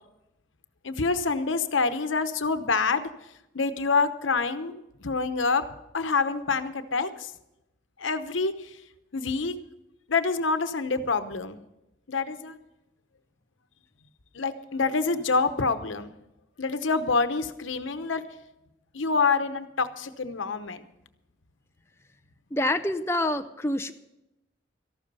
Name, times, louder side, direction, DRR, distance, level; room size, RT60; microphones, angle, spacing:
voice 1, 0.8-3.1 3.5-5.6 5.9-7.3 8.0-8.7 9.1-9.6 10.1-11.6 12.1-12.6 14.3-16.1 16.6-18.2 18.9-20.8, left 4 dB, 90° left, 10 dB, 0.9 m, -26 dB
voice 2, 22.5-23.9, left 1 dB, 15° left, 7 dB, 0.4 m, -26 dB
14.0 x 12.0 x 5.5 m, 0.89 s
head